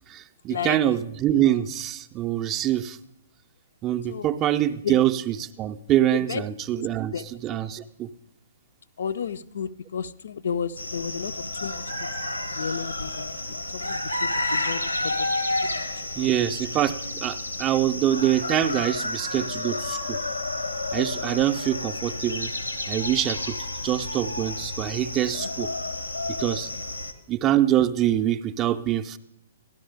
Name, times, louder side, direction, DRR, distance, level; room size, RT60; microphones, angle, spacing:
voice 1, 0.1-3.0 3.8-8.1 16.2-20.2 20.9-22.5 22.9-23.6 23.8-25.7 26.4-26.7 27.3-29.2, right 12 dB, 25° right, 10 dB, 0.4 m, -25 dB
voice 2, 6.1-6.5 7.1-7.3 7.6-7.8 9.0-15.4 15.6-16.4 26.6-26.8, left 7 dB, 55° left, 13 dB, 0.3 m, -33 dB
sound 1, 10.8-27.1, left 2 dB, 85° left, 0.8 m, -31 dB
12.5 x 12.0 x 3.4 m, 0.79 s
figure-of-eight pair, 120°, 0 cm